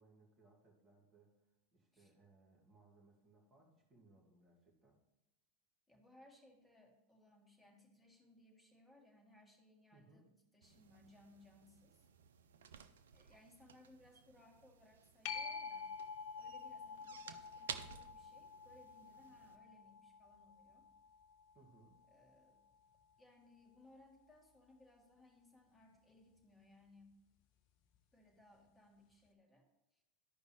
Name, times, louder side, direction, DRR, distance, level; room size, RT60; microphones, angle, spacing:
voice 1, 0.0-1.4 1.7-5.0 9.9-10.3 21.5-22.0, right 3 dB, 30° right, -3 dB, 2.4 m, -67 dB
voice 2, 5.9-12.0 13.1-16.0 16.4-20.9 22.1-22.6 23.2-27.1 28.1-29.7 29.9-30.0, left 1 dB, 5° left, 0 dB, 1.8 m, -65 dB
sound 1, 10.6-19.6, right 7 dB, 75° right, 0.5 m, -55 dB
sound 2, 15.2-22.4 27.9-28.0, left 5 dB, 50° left, 0.6 m, -49 dB
13.0 x 5.2 x 3.2 m, 0.93 s
hypercardioid pair, 90°, 0 cm